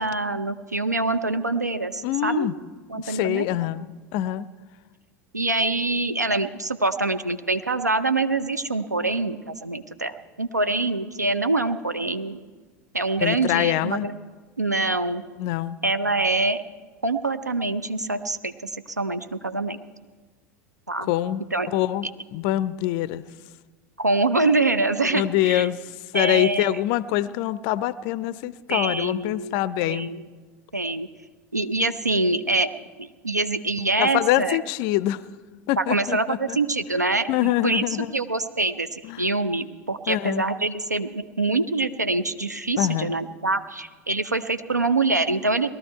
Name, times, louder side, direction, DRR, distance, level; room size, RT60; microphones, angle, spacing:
voice 1, 0.0-2.5 2.9-3.5 5.3-12.4 12.9-14.2 14.6-15.2 15.8-16.6 17.0-18.7 19.0-19.8 20.9-21.1 21.5-21.7 24.0-25.7 26.1-26.8 28.7-30.2 30.7-31.1 31.5-32.7 33.0-34.6 35.8-37.9 38.1-45.7, right 2 dB, 90° right, 11 dB, 0.5 m, -25 dB
voice 2, 2.0-2.5 3.0-4.5 13.2-14.1 15.4-15.8 21.1-22.1 22.3-23.2 25.1-30.1 34.0-35.2 35.7-36.6 37.3-38.1 39.0-39.3 40.1-40.4 42.8-43.2, left 14 dB, 45° left, 18 dB, 0.4 m, -25 dB
18.5 x 13.0 x 4.5 m, 1.4 s
figure-of-eight pair, 80°, 9 cm